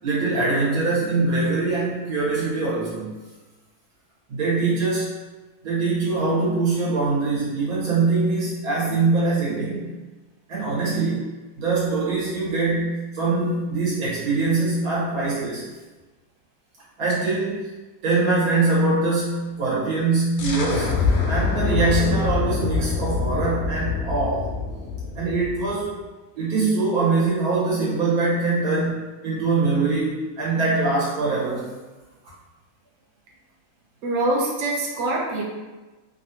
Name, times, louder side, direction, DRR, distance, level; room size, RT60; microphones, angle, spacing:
voice 1, 0.0-3.1 4.3-5.2 5.6-9.9 10.5-11.3 11.6-15.6 17.0-17.7 18.0-20.9 21.3-24.5 25.1-25.9 26.3-31.7, right 3 dB, 85° right, -8 dB, 1.5 m, -23 dB
sound 1, 20.4-25.9, left 5 dB, 85° left, 1.1 m, -25 dB
voice 2, 34.0-35.4, right 2 dB, 65° right, -2 dB, 0.9 m, -24 dB
3.1 x 2.5 x 2.8 m, 1.2 s
omnidirectional pair, 1.5 m